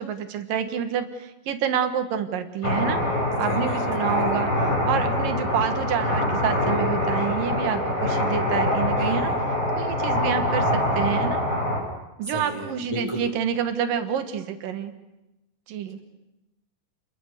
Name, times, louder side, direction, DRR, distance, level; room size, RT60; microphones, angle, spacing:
voice 1, 0.0-3.0 3.4-4.5 4.9-9.3 9.8-11.4 12.2-14.9 15.7-16.0, right 8 dB, 90° right, 9 dB, 3.2 m, -28 dB
sound 1, 2.6-11.8, left 1 dB, 45° left, 8.1 m, -24 dB
voice 2, 3.4-4.4 9.0-9.4 12.2-13.3, left 1 dB, 10° left, 1 dB, 5.1 m, -34 dB
29.5 x 22.0 x 6.8 m, 0.97 s
omnidirectional pair, 3.8 m